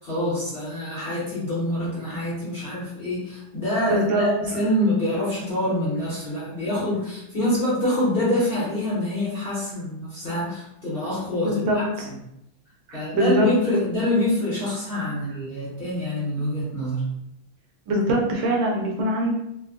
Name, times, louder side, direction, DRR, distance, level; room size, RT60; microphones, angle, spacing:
voice 1, 0.0-11.8 12.9-17.1, left 1 dB, 40° left, -10 dB, 0.8 m, -26 dB
voice 2, 3.9-4.3 11.4-12.1 12.9-13.5 17.9-19.3, equal, 85° right, 0 dB, 1.4 m, -22 dB
3.4 x 2.1 x 2.3 m, 0.84 s
omnidirectional pair, 2.1 m